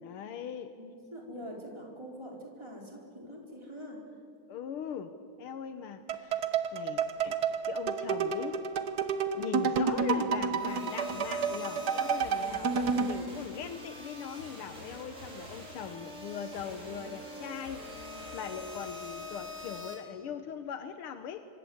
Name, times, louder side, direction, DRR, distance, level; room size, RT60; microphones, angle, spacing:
voice 1, 0.0-0.7 4.5-5.1 5.4-8.6 9.4-17.8 18.2-21.5, left 8 dB, 85° left, 9 dB, 1.9 m, -40 dB
voice 2, 0.8-4.0, equal, 10° right, -1 dB, 4.3 m, -44 dB
sound 1, 6.1-13.2, right 5 dB, 55° right, 1.5 m, -30 dB
sound 2, 10.6-19.9, left 1 dB, 35° right, 5.2 m, -44 dB
26.5 x 24.0 x 8.0 m, 2.4 s
omnidirectional pair, 2.3 m